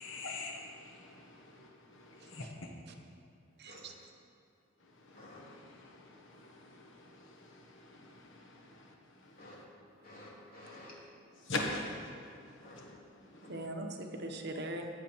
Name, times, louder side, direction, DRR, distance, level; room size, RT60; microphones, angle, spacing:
voice 1, 0.0-2.7 4.8-9.6 11.4-13.7, left 2 dB, 65° left, 1 dB, 1.2 m, -44 dB
voice 2, 3.6-3.9 13.5-14.9, right 1 dB, 55° right, 4 dB, 1.0 m, -40 dB
voice 3, 5.1-5.5 6.3-6.5 7.3-7.4 8.2-8.3 9.2-11.0 11.3-11.6 12.6-12.8 13.4-13.5, left 1 dB, 45° left, -5 dB, 3.1 m, -53 dB
15.0 x 9.4 x 4.6 m, 2.5 s
head